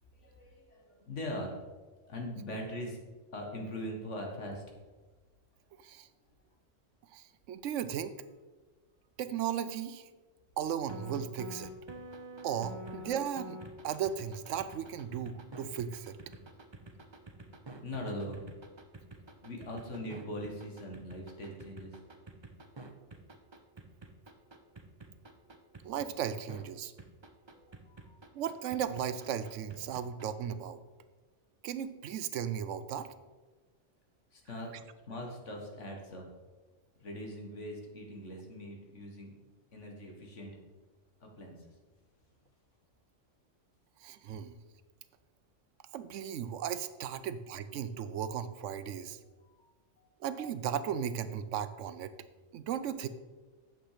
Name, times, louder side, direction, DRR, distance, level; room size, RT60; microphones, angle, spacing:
voice 1, 0.1-1.6 2.0-3.0 3.3-4.6 17.8-18.4 19.4-22.0 27.5-28.2 34.3-34.7 35.1-36.2 37.0-39.3 39.7-40.5 41.2-41.7 49.2-50.1, equal, 75° left, 1 dB, 2.1 m, -41 dB
voice 2, 7.1-8.1 9.2-10.1 10.6-11.7 12.4-13.6 13.8-16.2 25.8-26.9 28.3-30.8 31.6-33.1 44.0-44.6 45.9-49.2 50.2-52.1 52.5-53.1, right 9 dB, 80° right, 13 dB, 1.0 m, -36 dB
sound 1, 10.9-26.6 27.0-30.5, right 1 dB, 25° right, 0.7 m, -48 dB
8.8 x 7.3 x 5.0 m, 1.3 s
omnidirectional pair, 1.3 m